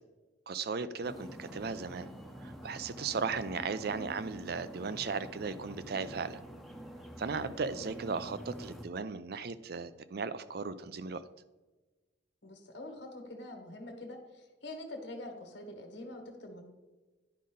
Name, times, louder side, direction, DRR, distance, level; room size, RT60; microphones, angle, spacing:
voice 1, 0.5-2.1 2.4-6.4 7.2-11.2, right 5 dB, 55° right, 13 dB, 0.4 m, -36 dB
sound 1, 1.0-8.8, equal, ahead, 0.7 m, -47 dB
voice 2, 12.4-16.6, left 1 dB, 65° left, 3 dB, 1.5 m, -45 dB
10.5 x 5.3 x 3.9 m, 1.2 s
head